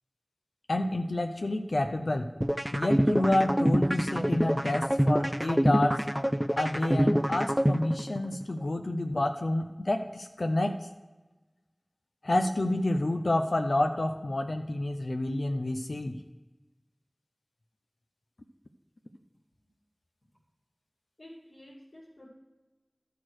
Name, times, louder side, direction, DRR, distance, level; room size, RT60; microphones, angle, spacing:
voice 1, 0.7-2.3 2.7-6.0 6.6-10.8 12.2-16.2, left 1 dB, 85° left, 5 dB, 0.6 m, -29 dB
sound 1, 2.4-8.4, equal, 10° right, 0.5 m, -26 dB
voice 2, 21.2-22.3, left 1 dB, 70° left, -9 dB, 2.7 m, -51 dB
12.0 x 4.6 x 6.3 m, 1.2 s
wide cardioid pair, 40°, 0 cm